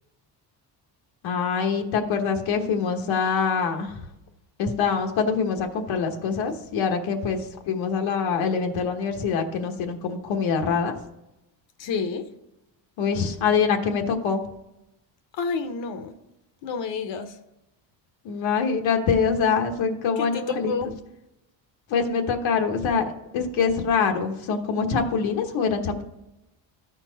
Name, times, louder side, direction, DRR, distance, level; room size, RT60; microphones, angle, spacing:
voice 1, 1.2-4.0 4.6-10.9 13.0-14.4 18.2-20.7 21.9-23.0 23.3-26.0, left 5 dB, 85° left, 4 dB, 1.2 m, -24 dB
voice 2, 11.8-12.3 15.3-16.1 16.6-17.4 20.2-20.9, left 5 dB, 70° left, 9 dB, 1.0 m, -29 dB
13.0 x 4.5 x 3.9 m, 0.93 s
cardioid pair, 135°, 45 cm